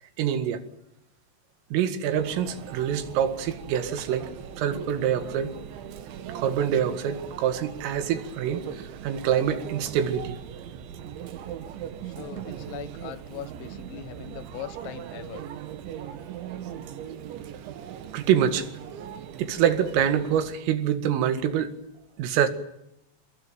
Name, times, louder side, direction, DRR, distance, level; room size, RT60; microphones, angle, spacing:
voice 1, 0.2-0.6 1.7-4.3 4.6-5.5 6.3-10.4 18.1-18.7 19.4-21.7 22.2-22.5, right 9 dB, 90° right, 4.6 m, -25 dB
Conversation / Chatter / Crowd, 2.1-20.6, right 9 dB, 70° right, 3.9 m, -39 dB
voice 2, 12.2-15.5, left 12 dB, 90° left, 4.1 m, -40 dB
28.5 x 20.5 x 9.2 m
omnidirectional pair, 5.7 m